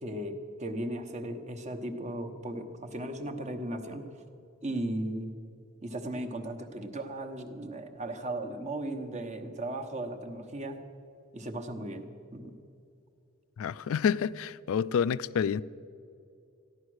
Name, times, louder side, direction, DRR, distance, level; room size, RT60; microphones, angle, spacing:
voice 1, 0.0-4.1 4.6-5.3 5.8-10.8 11.3-12.1 12.3-12.6, right 1 dB, 30° right, 1.0 m, -36 dB
voice 2, 13.6-15.6, left 7 dB, 70° left, 0.3 m, -28 dB
14.5 x 11.0 x 6.4 m
head